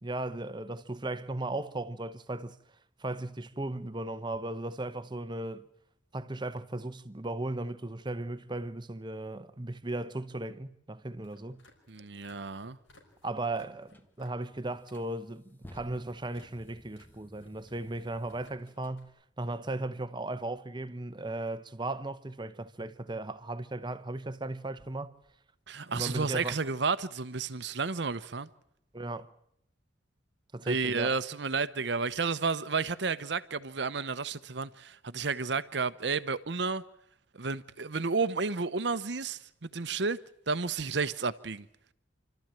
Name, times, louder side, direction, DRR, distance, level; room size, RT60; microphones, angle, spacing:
voice 1, 0.0-2.6 3.0-5.7 6.1-11.6 13.2-25.1 25.9-26.6 28.9-29.3 30.5-31.2, right 2 dB, 25° right, 0.9 m, -36 dB
sound 1, 11.1-15.1 15.3-15.8 16.3-17.1 17.3-19.1, left 2 dB, 90° left, 5.5 m, -62 dB
voice 2, 11.9-12.8 25.7-28.5 30.7-36.8 37.3-40.2 40.5-41.7, right 4 dB, 60° right, 0.9 m, -31 dB
sound 2, 13.9-14.1 14.7-19.0, equal, 10° left, 1.5 m, -55 dB
28.5 x 13.0 x 9.0 m
head